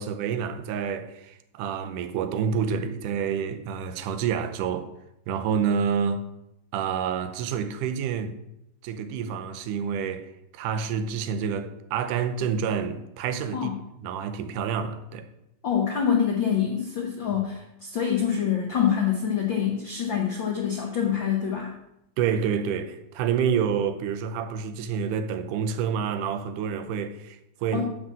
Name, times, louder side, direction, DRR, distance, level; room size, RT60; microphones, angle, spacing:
voice 1, 0.0-4.9 5.3-6.2 6.7-8.4 8.8-13.7 14.0-15.3 22.2-27.9, right 7 dB, 80° right, 2.2 m, -28 dB
voice 2, 15.6-21.7 27.7-27.9, left 8 dB, 85° left, 1.0 m, -26 dB
9.9 x 3.7 x 7.3 m
omnidirectional pair, 3.7 m